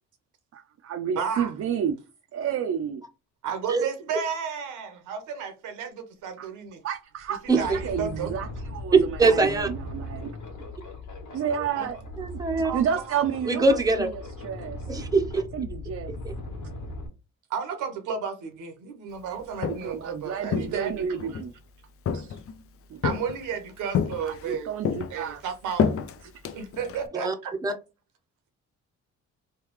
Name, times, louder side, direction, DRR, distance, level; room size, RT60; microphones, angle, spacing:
voice 1, 0.5-1.9 2.3-3.0 6.4-6.5 6.8-10.4 11.3-12.4 12.7-14.9 15.5-16.1 19.2-21.5 22.1-22.4 22.9-23.0 24.2-25.4 26.4-26.5, right 8 dB, 55° right, 0.5 m, -31 dB
voice 2, 1.2-1.5 3.4-6.8 7.4-8.3 11.8-11.9 12.6-13.1 17.5-21.4 23.0-24.7 25.1-26.0 26.5-27.5, right 6 dB, 85° right, 0.9 m, -33 dB
sound 1, 6.7-6.8 7.2-17.1, left 1 dB, 80° left, 1.2 m, -38 dB
voice 3, 8.9-9.7 12.2-12.7 13.5-14.1 14.9-15.4 16.2-16.3 27.1-27.3 27.6-27.7, right 3 dB, 10° right, 0.7 m, -22 dB
Walk footsteps, 19.4-20.0 20.5-21.5 22.1-22.6 23.0-23.6 23.9-24.5 24.8-27.1, left 7 dB, 50° left, 0.5 m, -29 dB
3.3 x 2.3 x 3.1 m
cardioid pair, 90°, 30 cm